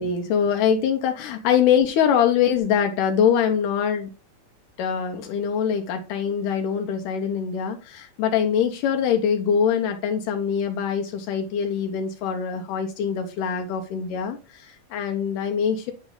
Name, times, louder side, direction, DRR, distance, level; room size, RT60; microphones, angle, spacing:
voice 1, 0.0-4.1 4.8-15.9, left 7 dB, 80° left, 5 dB, 2.2 m, -23 dB
8.9 x 3.1 x 3.8 m, 0.34 s
omnidirectional pair, 3.8 m